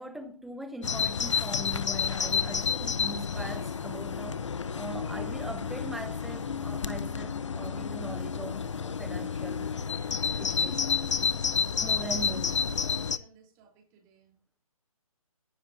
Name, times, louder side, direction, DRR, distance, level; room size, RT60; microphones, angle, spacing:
voice 1, 0.0-9.9 10.2-11.0 11.8-12.6, right 1 dB, ahead, 0.9 m, -41 dB
Bird vocalization bird call bird song, 0.8-13.2, left 6 dB, 55° left, 1.0 m, -30 dB
voice 2, 12.0-12.3 12.6-14.4, right 3 dB, 15° right, 3.9 m, -58 dB
18.5 x 11.0 x 2.8 m
hypercardioid pair, 160°, 19 cm